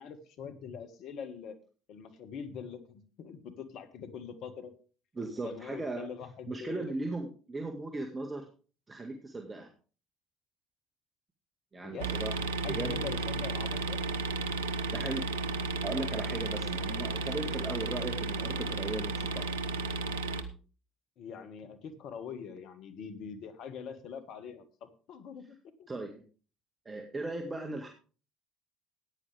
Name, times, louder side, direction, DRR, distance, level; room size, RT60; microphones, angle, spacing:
voice 1, 0.0-1.6 1.9-4.7 5.4-6.9 11.7-12.2 12.6-14.0 21.2-25.9, left 6 dB, 55° left, 9 dB, 1.7 m, -43 dB
voice 2, 5.2-6.1 6.5-8.5 8.9-9.7 11.7-12.3 12.6-13.0 14.9-15.3 15.8-19.5 25.9-26.2 26.9-27.9, right 2 dB, 25° right, 3 dB, 1.9 m, -37 dB
sound 1, 12.0-20.4, right 3 dB, 80° right, 0.9 m, -33 dB
15.0 x 9.8 x 3.5 m, 0.38 s
figure-of-eight pair, 60°, 0 cm